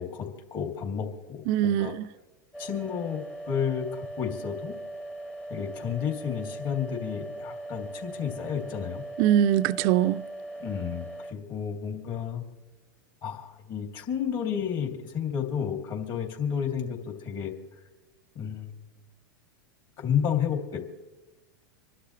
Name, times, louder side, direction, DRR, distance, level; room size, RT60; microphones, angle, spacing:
voice 1, 0.0-1.9 2.6-4.7 5.5-9.0 10.6-12.4 13.2-17.5 18.3-18.7 20.0-20.8, left 8 dB, 40° left, 2.9 m, -31 dB
voice 2, 1.5-2.1 9.2-10.3, right 11 dB, 50° right, 0.5 m, -23 dB
sound 1, 2.5-11.3, right 1 dB, 10° left, 1.0 m, -40 dB
26.5 x 11.5 x 3.3 m
hypercardioid pair, 100°, 11 cm